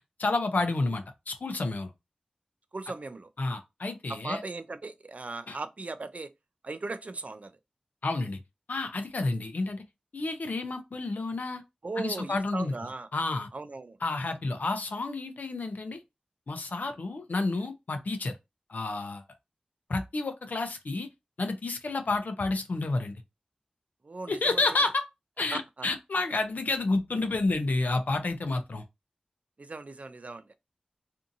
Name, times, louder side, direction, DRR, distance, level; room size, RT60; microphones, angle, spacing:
voice 1, 0.2-1.9 3.4-4.4 5.5-5.6 8.0-8.4 8.7-9.8 10.1-11.6 12.0-12.7 13.1-13.5 14.0-16.0 16.5-18.3 18.7-19.2 19.9-21.1 21.4-23.2 24.3-25.0 25.4-28.8, left 3 dB, 85° left, 0.5 m, -30 dB
voice 2, 2.7-3.3 4.1-6.3 6.6-7.5 11.8-13.1 13.5-14.0 24.0-24.8 25.5-25.9 29.6-30.5, right 3 dB, 60° right, 0.4 m, -38 dB
2.6 x 2.6 x 2.6 m
wide cardioid pair, 55°, 3 cm